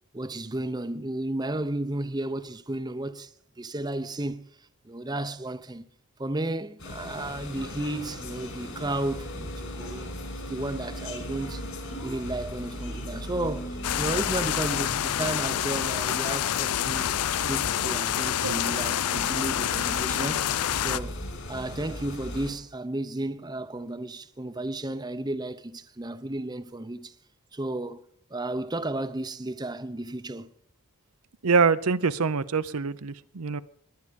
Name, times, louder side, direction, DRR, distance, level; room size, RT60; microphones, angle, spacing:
voice 1, 0.1-5.9 6.2-10.1 10.5-11.6 12.0-17.1 17.5-20.5 20.8-21.2 21.5-27.2 27.5-28.0 28.3-30.5, right 1 dB, 20° right, 0.7 m, -33 dB
sound 1, 6.8-22.5, equal, 60° left, 5.5 m, -38 dB
sound 2, 13.8-21.0, left 11 dB, 90° left, 0.5 m, -27 dB
voice 2, 31.4-33.6, right 5 dB, 80° right, 0.7 m, -24 dB
21.0 x 9.8 x 5.3 m
head